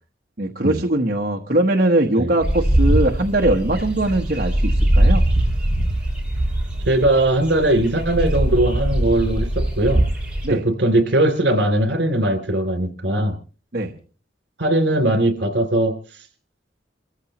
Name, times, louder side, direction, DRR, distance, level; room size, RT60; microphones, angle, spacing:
voice 1, 0.4-5.2 10.4-10.6 13.7-13.9, right 1 dB, 50° right, 1 dB, 1.2 m, -21 dB
sound 1, 2.4-10.5, right 1 dB, 5° right, 5.1 m, -21 dB
voice 2, 6.8-10.0 10.5-13.4 14.6-15.9, right 1 dB, 70° right, 8 dB, 3.1 m, -19 dB
29.0 x 14.5 x 3.0 m, 0.38 s
head